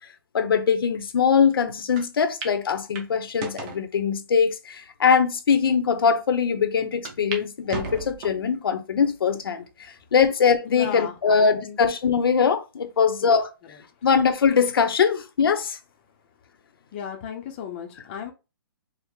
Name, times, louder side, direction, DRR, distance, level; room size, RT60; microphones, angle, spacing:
voice 1, 0.3-13.5 14.0-15.8, left 6 dB, 70° left, 0.7 m, -22 dB
sound 1, 2.0-2.1 2.4-2.6 2.9-3.8 4.5-4.6 5.3-5.4 5.7-5.8 7.0-7.4 7.7-8.5 9.0-9.5 10.0-10.1 11.2-11.7, right 4 dB, 25° right, 0.7 m, -35 dB
voice 2, 10.6-11.8 13.1-13.4 16.9-18.3, left 8 dB, 25° left, 0.6 m, -35 dB
4.7 x 2.1 x 3.5 m
hypercardioid pair, 160°, 13 cm